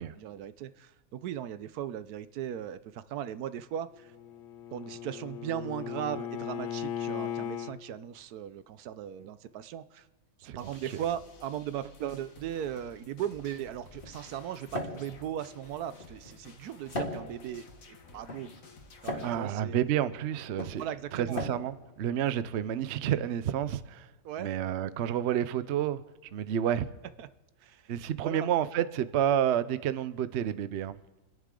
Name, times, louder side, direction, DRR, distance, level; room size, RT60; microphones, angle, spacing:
voice 1, 0.0-4.1 4.7-10.1 10.4-18.5 19.0-19.8 20.8-21.4 24.2-24.5 27.2-27.3 27.6-27.9 28.2-28.5, right 10 dB, 75° right, 1.1 m, -38 dB
Bowed string instrument, 3.9-7.7, left 10 dB, 75° left, 1.3 m, -37 dB
voice 2, 10.4-11.0 19.2-20.8 21.1-24.1 24.4-26.0 26.3-26.9 27.9-31.0, right 10 dB, 60° right, 0.7 m, -30 dB
sound 1, 10.6-19.3, left 4 dB, 60° left, 1.7 m, -54 dB
sound 2, 13.0-22.9, left 1 dB, 35° left, 2.0 m, -41 dB
28.0 x 11.0 x 3.7 m
omnidirectional pair, 1.7 m